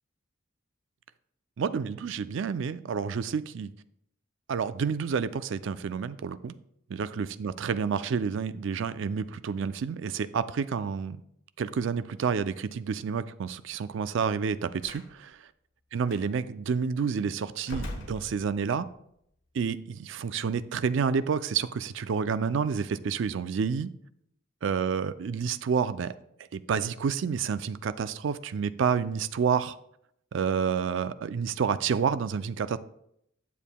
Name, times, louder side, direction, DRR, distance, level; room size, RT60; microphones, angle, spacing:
voice 1, 1.6-3.7 4.5-6.5 6.9-11.2 11.6-15.4 15.9-18.9 19.5-23.9 24.6-26.1 26.5-29.8 30.3-32.8, right 6 dB, 65° right, 13 dB, 0.4 m, -29 dB
Slam, 14.8-15.1 16.1-16.2 17.6-18.9, left 1 dB, 70° left, 1.2 m, -40 dB
10.0 x 7.1 x 2.2 m, 0.75 s
head